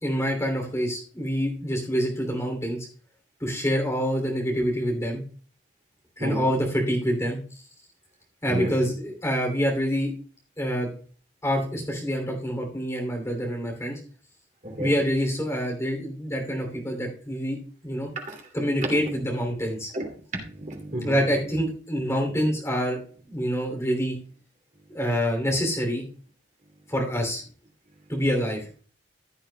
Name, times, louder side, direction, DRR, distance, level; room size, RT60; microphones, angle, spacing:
voice 1, 0.0-2.8 3.4-5.2 6.2-7.4 8.4-10.1 10.6-10.9 11.4-14.0 14.8-17.6 17.8-18.1 18.5-19.9 21.0-23.0 23.3-24.2 24.9-26.0 26.9-27.4 28.1-28.7, equal, 15° left, 2.9 m, -26 dB
voice 2, 8.5-8.8 14.6-14.9 18.3-18.4 19.0-19.1 19.9-21.2 22.3-22.5, right 1 dB, 45° right, 2.5 m, -32 dB
15.0 x 8.9 x 2.2 m
head